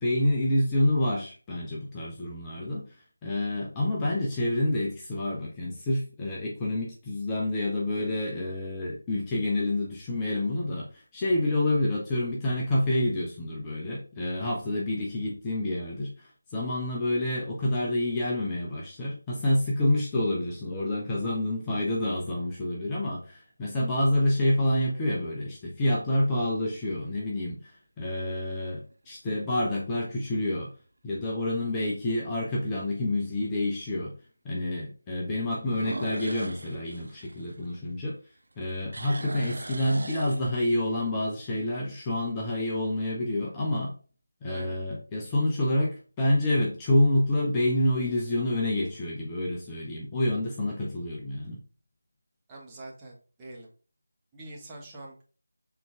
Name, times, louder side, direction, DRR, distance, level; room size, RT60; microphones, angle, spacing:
voice 1, 0.0-30.7 31.0-34.2 34.4-38.2 38.6-43.9 44.4-51.6, left 1 dB, 10° left, -4 dB, 0.9 m, -28 dB
sound 1, 22.0-22.7 23.3-23.4 28.7-29.1 29.6-29.7 30.3-30.4 30.6-30.7 32.2-32.3 35.6-38.2 38.5-40.9, right 2 dB, 50° right, 0.9 m, -40 dB
voice 2, 44.5-44.8 52.5-53.7 54.3-55.2, right 2 dB, 10° right, -4 dB, 1.1 m, -44 dB
6.9 x 3.8 x 3.6 m, 0.39 s
figure-of-eight pair, 165°, 0 cm